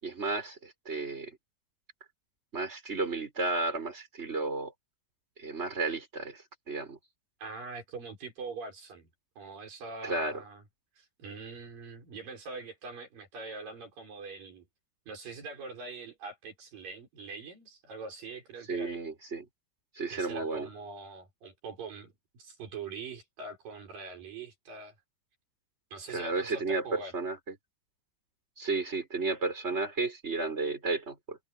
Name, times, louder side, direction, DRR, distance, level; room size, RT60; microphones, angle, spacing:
voice 1, 0.0-1.4 2.5-4.7 5.4-7.0 10.0-10.4 18.7-19.5 19.9-20.7 26.1-27.5 28.6-31.4, right 3 dB, 15° right, 6.6 m, -33 dB
voice 2, 7.4-9.1 9.4-10.6 11.0-14.7 15.1-18.9 20.1-25.0 25.9-27.1, right 4 dB, 75° right, 7.1 m, -43 dB
omnidirectional pair, 3.9 m